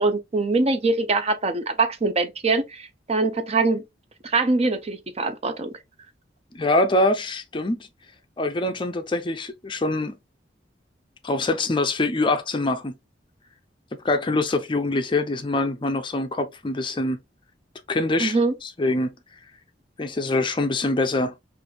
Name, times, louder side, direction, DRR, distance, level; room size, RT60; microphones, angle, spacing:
voice 1, 0.0-3.8 4.2-5.7 18.2-18.5, right 3 dB, 35° right, 0.5 m, -23 dB
voice 2, 6.5-7.9 8.4-10.2 11.2-12.9 13.9-17.2 17.9-18.4 18.6-19.1 20.0-21.3, left 2 dB, 25° left, 0.5 m, -24 dB
4.6 x 2.5 x 2.7 m
head